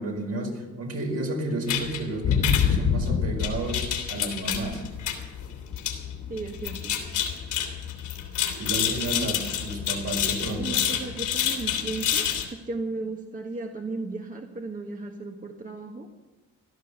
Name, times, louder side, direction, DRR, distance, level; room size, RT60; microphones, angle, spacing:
voice 1, 0.0-4.8 8.6-10.8, right 1 dB, 55° right, 2 dB, 4.8 m, -31 dB
sound 1, 1.7-12.5, left 8 dB, 85° left, 3.1 m, -27 dB
voice 2, 6.3-7.0 9.1-9.4 10.6-16.1, right 3 dB, 25° right, 2 dB, 1.5 m, -35 dB
16.5 x 12.0 x 6.8 m, 1.2 s
cardioid pair, 90°, 30 cm